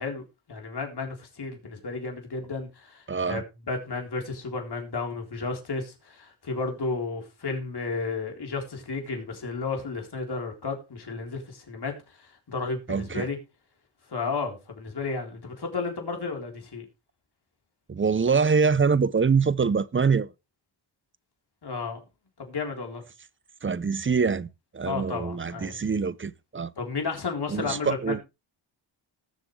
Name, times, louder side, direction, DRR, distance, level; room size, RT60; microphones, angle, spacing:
voice 1, 0.0-13.4 14.1-16.9 21.6-22.0 22.4-23.0 24.9-25.8 26.8-28.2, left 4 dB, 50° left, 3.9 m, -33 dB
voice 2, 3.1-3.4 12.9-13.3 17.9-20.3 23.6-24.5 24.7-26.7 27.5-28.2, right 5 dB, 25° right, 0.6 m, -24 dB
18.5 x 7.4 x 3.3 m
cardioid pair, 85°, 48 cm